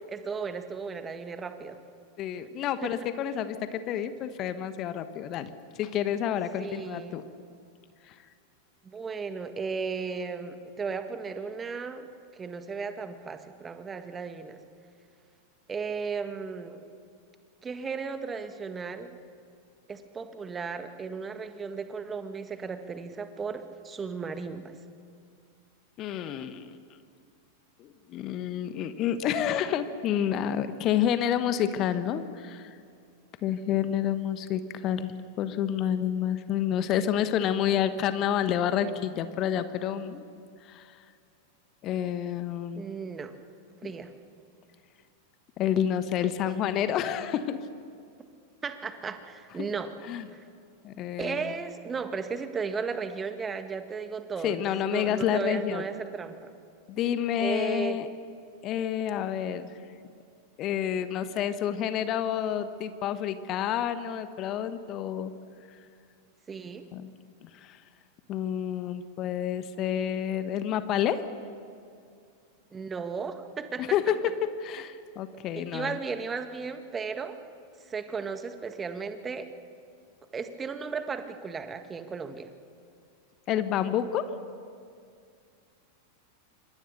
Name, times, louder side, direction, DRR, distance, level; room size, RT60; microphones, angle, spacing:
voice 1, 0.1-1.8 2.8-3.1 6.6-7.2 8.8-12.1 12.3-14.6 15.7-16.8 17.6-19.2 19.9-24.7 33.7-33.8 42.8-43.3 43.8-44.1 48.6-49.9 50.3-50.4 51.2-56.5 57.4-58.0 66.5-66.9 72.7-73.9 75.6-77.4 77.9-79.5 80.3-82.5, right 5 dB, 20° right, 9 dB, 1.7 m, -35 dB
voice 2, 2.2-5.5 5.8-7.2 8.1-8.2 26.0-26.7 27.8-32.8 33.4-40.3 40.6-41.0 41.8-42.8 43.8-43.9 45.6-47.6 50.1-50.2 50.8-51.4 54.4-55.8 56.9-58.1 58.6-59.8 60.6-65.3 66.9-67.1 67.4-67.8 68.3-71.2 73.8-76.0 83.5-84.3, left 10 dB, 35° left, 12 dB, 1.3 m, -29 dB
27.5 x 25.0 x 6.7 m, 2.3 s
figure-of-eight pair, 90°, 0 cm